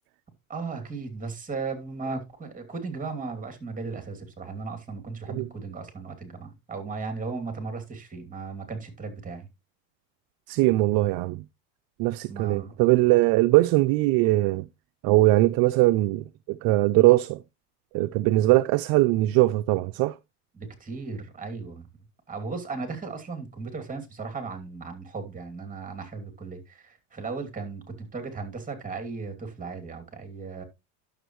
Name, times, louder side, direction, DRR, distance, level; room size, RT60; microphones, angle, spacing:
voice 1, 0.5-9.5 12.3-12.8 20.5-21.9 22.3-30.6, right 4 dB, 15° right, 2.7 m, -36 dB
voice 2, 10.5-11.4 12.0-14.7 15.0-17.4 17.9-20.2, right 18 dB, 50° right, 0.5 m, -21 dB
11.0 x 7.0 x 3.1 m
supercardioid pair, 115°, 45 cm